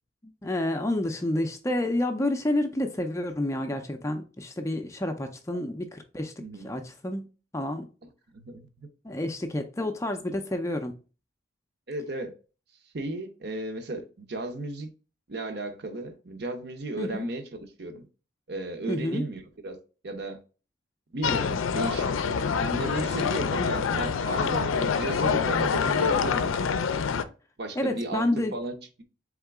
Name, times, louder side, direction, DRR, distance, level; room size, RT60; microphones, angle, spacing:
voice 1, 0.4-6.3 6.6-7.3 7.5-7.9 9.0-11.0 17.0-17.3 18.9-19.2 27.8-28.5, left 1 dB, 15° left, 0.4 m, -29 dB
voice 2, 8.3-8.9 11.9-12.3 12.9-14.9 15.3-18.0 18.5-19.8 20.0-20.4 21.1-22.1 22.6-26.5 27.6-28.8, right 2 dB, 55° right, 0.8 m, -34 dB
sound 1, 21.2-27.2, left 6 dB, 85° left, 0.4 m, -26 dB
4.0 x 3.6 x 3.5 m
head